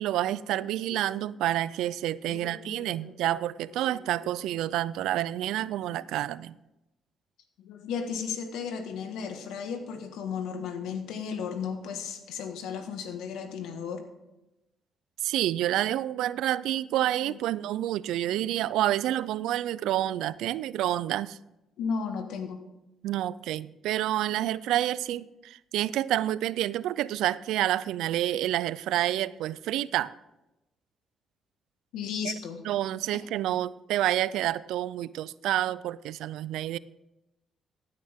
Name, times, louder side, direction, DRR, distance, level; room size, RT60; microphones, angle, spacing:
voice 1, 0.0-6.5 15.2-21.4 23.0-30.1 32.2-32.3 32.6-36.8, right 13 dB, 90° right, 19 dB, 0.3 m, -28 dB
voice 2, 2.3-3.3 3.8-4.4 5.9-6.0 7.6-14.0 17.2-17.4 21.8-22.6 31.9-32.6, left 6 dB, 90° left, 7 dB, 1.5 m, -35 dB
15.5 x 9.5 x 3.6 m, 0.94 s
cardioid pair, 90°, 0 cm